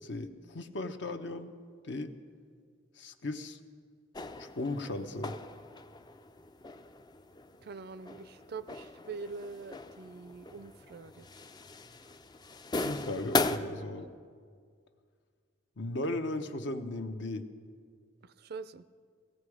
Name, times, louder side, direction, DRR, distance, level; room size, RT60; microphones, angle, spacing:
voice 1, 0.0-1.5 1.8-2.2 3.0-3.6 4.4-5.4 12.8-14.1 15.8-17.5, left 2 dB, 65° left, 8 dB, 0.8 m, -36 dB
sound 1, 4.1-13.6, left 3 dB, 20° left, 0.4 m, -38 dB
voice 2, 7.6-11.3 14.0-14.1 18.2-18.8, right 4 dB, 55° right, 14 dB, 0.4 m, -44 dB
16.5 x 16.5 x 4.9 m, 2.1 s
head